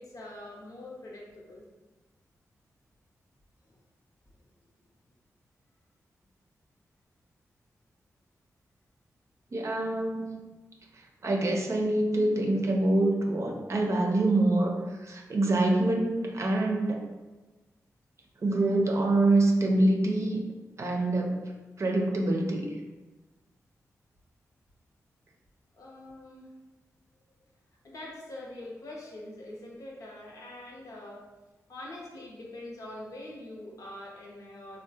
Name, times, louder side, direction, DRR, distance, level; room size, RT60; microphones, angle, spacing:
voice 1, 0.0-1.6 3.7-3.8 25.7-26.5 27.2-27.3 27.8-31.3 31.7-34.8, left 1 dB, 70° left, -2 dB, 0.7 m, -44 dB
voice 2, 9.5-10.5 10.9-17.0 18.4-20.4 20.8-21.4 21.8-22.7, right 2 dB, 55° right, 1 dB, 0.5 m, -26 dB
3.5 x 2.1 x 2.7 m, 1.2 s
cardioid pair, 65°, 6 cm